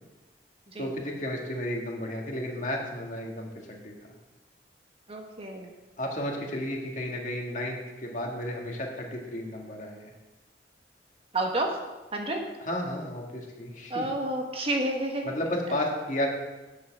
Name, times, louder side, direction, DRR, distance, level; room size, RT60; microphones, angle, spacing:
voice 1, 0.8-4.0 6.0-10.1 12.7-14.1 15.2-16.3, left 1 dB, 45° left, 0 dB, 1.9 m, -33 dB
voice 2, 5.1-5.7 11.3-11.8 12.1-12.4 13.9-15.3, right 1 dB, 30° right, 2 dB, 1.2 m, -30 dB
9.5 x 7.0 x 6.0 m, 1.1 s
head